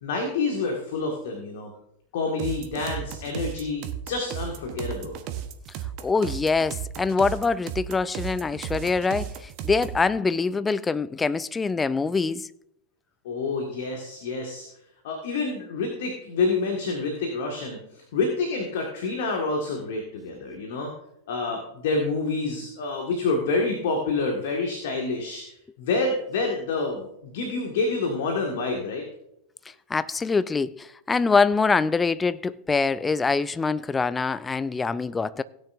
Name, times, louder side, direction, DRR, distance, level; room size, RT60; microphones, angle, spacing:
voice 1, 0.0-1.7 2.1-5.2 13.3-14.7 15.0-17.8 18.1-20.9 21.3-25.4 25.8-29.0, left 3 dB, 55° left, 1.8 m, -28 dB
sound 1, 2.4-10.1, right 10 dB, 40° right, 1.0 m, -35 dB
voice 2, 6.0-12.5 29.9-35.4, left 4 dB, 15° left, 0.4 m, -24 dB
17.0 x 9.4 x 2.6 m
figure-of-eight pair, 90°, 0 cm